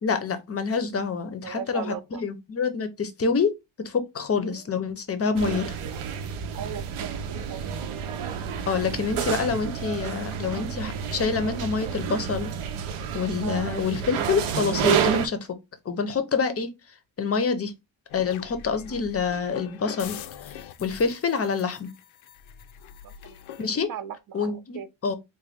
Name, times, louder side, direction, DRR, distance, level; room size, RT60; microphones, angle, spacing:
voice 1, 0.0-3.5 3.8-5.8 8.7-12.5 13.1-15.5 15.9-16.7 17.2-17.7 18.1-20.2 20.4-21.9 23.6-23.9 24.3-25.2, left 5 dB, 30° left, 0.5 m, -27 dB
voice 2, 1.4-2.2 4.4-4.6 6.6-7.2 7.5-7.7 13.4-13.7 23.0-23.4 23.9-24.9, right 8 dB, 45° right, 0.5 m, -37 dB
sound 1, 5.4-15.3, right 8 dB, 85° right, 0.7 m, -29 dB
sound 2, 18.1-23.7, left 9 dB, 80° left, 0.5 m, -42 dB
3.8 x 2.2 x 3.3 m
wide cardioid pair, 145°, 48 cm